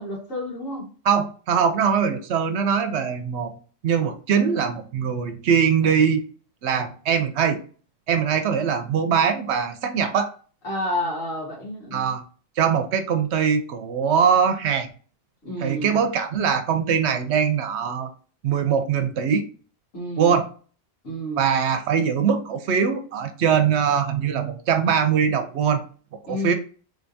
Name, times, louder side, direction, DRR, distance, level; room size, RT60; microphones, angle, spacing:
voice 1, 0.0-0.9 10.6-12.1 15.4-16.0 19.9-20.4 21.0-21.4 26.3-26.5, left 1 dB, 90° left, -4 dB, 2.2 m, -30 dB
voice 2, 1.1-3.5 3.8-6.2 6.6-7.6 8.1-10.3 11.9-12.2 12.6-14.9 15.6-18.1 18.4-19.5 20.2-20.5 21.4-25.8 26.3-26.5, right 7 dB, 70° right, 9 dB, 0.8 m, -22 dB
3.6 x 3.4 x 2.6 m, 0.40 s
omnidirectional pair, 1.3 m